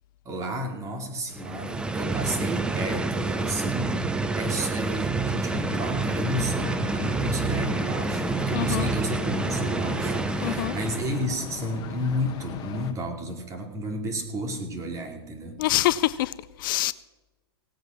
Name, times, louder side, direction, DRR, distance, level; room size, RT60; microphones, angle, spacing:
voice 1, 0.2-4.0 4.4-15.6, equal, 25° right, 2.5 m, -32 dB
sound 1, 1.3-11.3, right 3 dB, 5° right, 0.6 m, -28 dB
sound 2, 5.5-12.9, left 8 dB, 30° left, 1.5 m, -38 dB
voice 2, 8.5-8.9 10.4-10.7 15.6-16.9, left 15 dB, 55° left, 0.4 m, -25 dB
17.5 x 8.1 x 5.9 m
hypercardioid pair, 130°, 14 cm